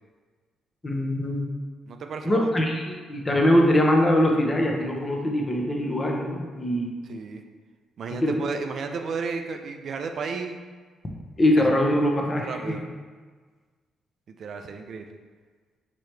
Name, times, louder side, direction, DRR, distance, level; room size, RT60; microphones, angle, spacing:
voice 1, 0.8-1.5 2.2-6.9 8.1-8.3 11.4-12.8, left 1 dB, 25° left, 1 dB, 0.7 m, -22 dB
voice 2, 1.9-2.5 7.1-7.4 8.0-10.6 12.4-12.8 14.3-15.1, right 5 dB, 55° right, 5 dB, 0.3 m, -33 dB
4.6 x 3.0 x 3.2 m, 1.5 s
cardioid pair, 90°, 0 cm